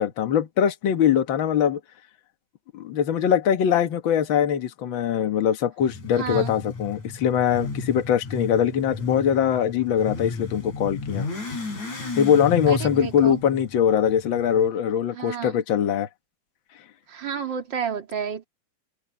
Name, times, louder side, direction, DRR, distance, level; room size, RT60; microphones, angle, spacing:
voice 1, 0.0-1.8 2.7-11.3 12.2-16.1, left 9 dB, 50° left, 1.8 m, -22 dB
Motorcycle / Accelerating revving vroom, 5.8-14.7, left 3 dB, 65° left, 6.8 m, -34 dB
voice 2, 6.2-6.5 12.7-13.4 15.1-15.6 17.1-18.4, right 7 dB, 40° right, 2.5 m, -31 dB
omnidirectional pair, 3.6 m